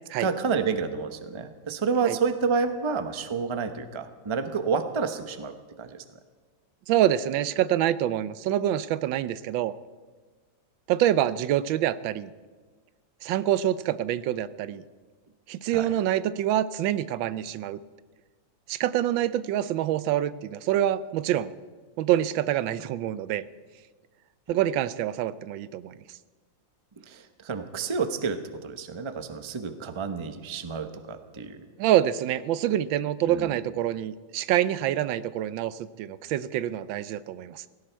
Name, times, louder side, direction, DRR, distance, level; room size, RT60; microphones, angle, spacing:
voice 1, 0.2-6.0 15.7-15.9 27.1-31.6 33.3-33.5, right 5 dB, 30° right, 9 dB, 0.5 m, -29 dB
voice 2, 6.9-9.7 10.9-12.3 13.2-14.8 15.5-17.8 18.7-21.5 22.0-23.4 24.5-26.0 31.8-37.7, right 12 dB, 90° right, 16 dB, 1.4 m, -26 dB
17.0 x 17.0 x 4.6 m, 1.4 s
omnidirectional pair, 2.0 m